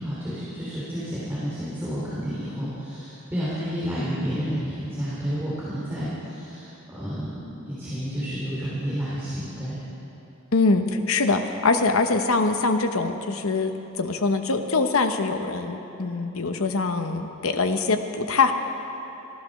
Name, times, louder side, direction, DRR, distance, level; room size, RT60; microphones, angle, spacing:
voice 1, 0.0-9.8, equal, 10° right, -10 dB, 3.0 m, -30 dB
voice 2, 10.5-18.5, left 3 dB, 70° left, 6 dB, 0.9 m, -23 dB
14.5 x 13.0 x 6.4 m, 3.0 s
head